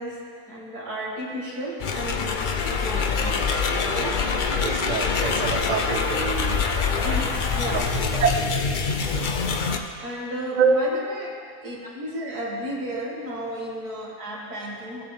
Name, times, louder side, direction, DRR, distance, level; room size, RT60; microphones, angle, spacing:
voice 1, 0.0-3.4 3.9-4.2 5.6-5.8 7.0-7.9 10.0-15.0, right 1 dB, 70° right, -4 dB, 2.8 m, -33 dB
sound 1, 1.8-9.8, left 5 dB, 55° left, 0.5 m, -25 dB
voice 2, 4.5-7.2 7.7-8.3 10.5-10.8, right 6 dB, 45° right, 5 dB, 0.5 m, -26 dB
19.5 x 8.0 x 3.5 m, 2.1 s
omnidirectional pair, 1.7 m